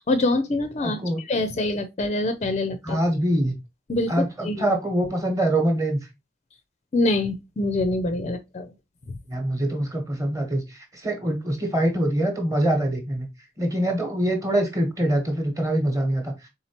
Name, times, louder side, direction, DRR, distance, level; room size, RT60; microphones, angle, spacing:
voice 1, 0.0-3.0 3.9-4.1 4.4-4.6 6.9-8.7, left 2 dB, 35° left, 0.4 m, -25 dB
voice 2, 0.8-1.2 2.8-3.5 4.1-6.0 9.3-13.3 13.6-16.5, right 1 dB, 20° right, 1.0 m, -24 dB
4.3 x 3.6 x 2.8 m
head